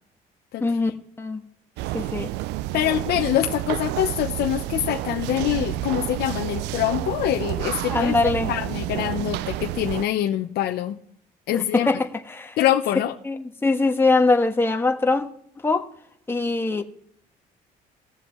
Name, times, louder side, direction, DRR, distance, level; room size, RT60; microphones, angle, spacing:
voice 1, 0.6-0.9 1.2-1.4 1.9-2.3 7.9-8.5 11.5-12.6 13.2-15.3 15.6-15.9 16.3-16.8, left 3 dB, 15° left, 1.3 m, -22 dB
sound 1, 1.8-10.0, right 16 dB, 90° right, 0.4 m, -29 dB
voice 2, 2.7-11.0 11.5-11.9 12.6-13.1, left 12 dB, 70° left, 0.9 m, -24 dB
19.0 x 7.3 x 3.1 m
cardioid pair, 110°, 17 cm